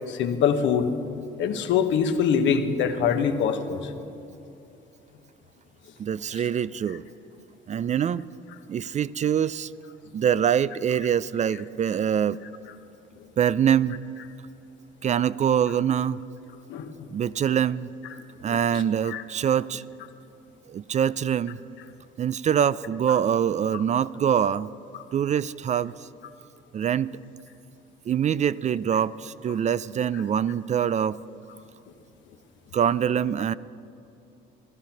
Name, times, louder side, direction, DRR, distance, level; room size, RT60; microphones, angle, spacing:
voice 1, 0.1-0.9 1.4-3.9 16.7-17.1 19.0-19.2, left 7 dB, 70° left, 7 dB, 1.2 m, -24 dB
voice 2, 6.0-7.0 7.7-8.2 8.7-9.7 10.1-12.4 13.4-14.0 15.0-16.2 17.1-17.9 18.4-19.8 20.7-21.6 22.2-24.7 25.1-25.9 26.7-27.1 28.1-31.2 32.7-33.5, right 8 dB, 35° right, 18 dB, 0.4 m, -24 dB
15.5 x 12.0 x 5.8 m, 2.8 s
supercardioid pair, 80°, 20 cm